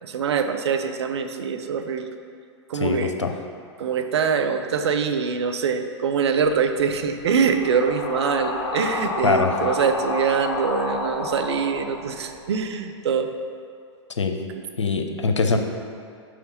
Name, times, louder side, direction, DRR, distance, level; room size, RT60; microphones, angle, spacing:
voice 1, 0.0-2.1 2.7-3.1 3.8-13.3, right 6 dB, 65° right, 7 dB, 0.6 m, -24 dB
voice 2, 2.7-3.3 9.2-9.6 14.2-14.4 14.8-15.6, left 4 dB, 80° left, 5 dB, 0.7 m, -22 dB
sound 1, 6.4-12.6, left 3 dB, 45° left, 0.9 m, -30 dB
6.3 x 5.0 x 5.2 m, 2.4 s
figure-of-eight pair, 105°, 15 cm